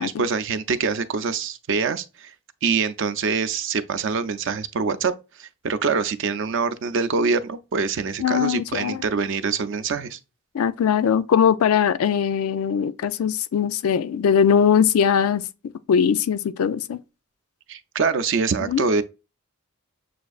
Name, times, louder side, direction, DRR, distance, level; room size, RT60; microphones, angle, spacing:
voice 1, 0.0-2.3 2.6-5.1 5.4-10.2 17.7-19.0, right 5 dB, 60° right, 0.4 m, -24 dB
voice 2, 8.2-9.0 10.5-15.5 15.9-17.0 18.7-18.8, left 7 dB, 80° left, 0.4 m, -20 dB
7.0 x 2.5 x 2.3 m
head